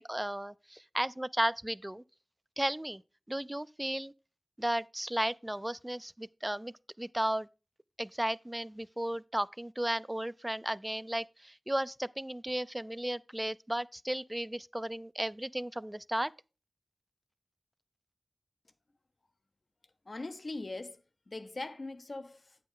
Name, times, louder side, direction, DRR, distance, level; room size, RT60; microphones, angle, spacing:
voice 1, 0.0-2.0 2.6-3.0 3.3-4.1 4.6-7.5 8.0-16.3, right 1 dB, 20° right, 0.4 m, -34 dB
voice 2, 20.1-22.6, left 2 dB, 75° left, 0.8 m, -41 dB
8.9 x 7.7 x 3.7 m
wide cardioid pair, 45°, 0 cm